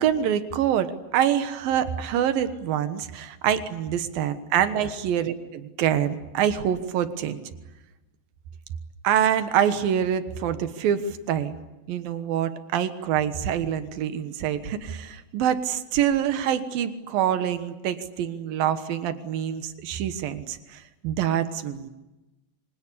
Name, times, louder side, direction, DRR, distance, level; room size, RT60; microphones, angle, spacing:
voice 1, 0.0-7.4 9.0-11.6 11.9-21.9, right 9 dB, 70° right, 10 dB, 2.3 m, -25 dB
27.0 x 25.0 x 8.5 m, 1.0 s
omnidirectional pair, 5.8 m